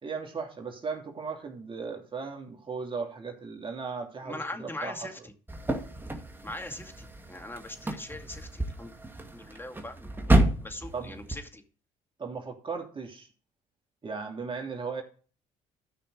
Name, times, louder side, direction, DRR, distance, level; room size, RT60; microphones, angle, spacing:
voice 1, 0.0-5.1 10.9-11.1 12.2-13.3 14.0-15.0, right 5 dB, 35° right, 2.9 m, -37 dB
voice 2, 4.2-5.3 6.4-8.9 9.3-10.1 10.6-11.6, left 2 dB, 15° left, 2.3 m, -41 dB
sound 1, 5.5-11.4, right 1 dB, 15° right, 2.1 m, -30 dB
13.0 x 6.0 x 4.9 m
supercardioid pair, 65°, 15 cm